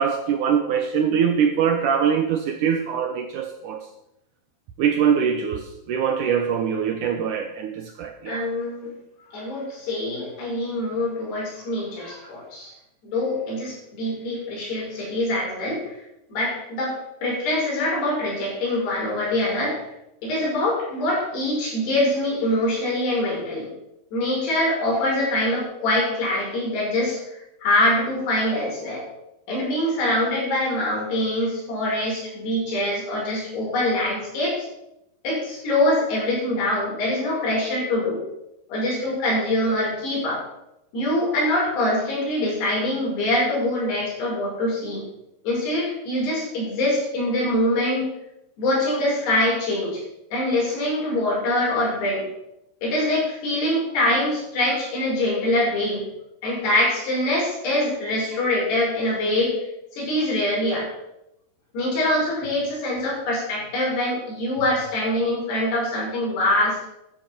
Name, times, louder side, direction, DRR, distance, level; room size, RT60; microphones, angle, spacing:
voice 1, 0.0-3.9 4.8-8.4, right 7 dB, 70° right, 6 dB, 2.0 m, -23 dB
voice 2, 8.3-8.9 9.3-12.7 13.0-15.9 16.3-19.8 20.2-23.7 24.1-27.2 27.6-29.0 29.5-34.6 35.2-38.2 38.7-40.4 40.9-45.0 45.4-48.1 48.6-50.0 50.3-52.3 52.8-56.0 56.4-59.6 59.9-60.9 61.7-66.8, left 1 dB, 85° left, -4 dB, 7.7 m, -24 dB
13.5 x 9.9 x 5.9 m, 0.85 s
omnidirectional pair, 4.6 m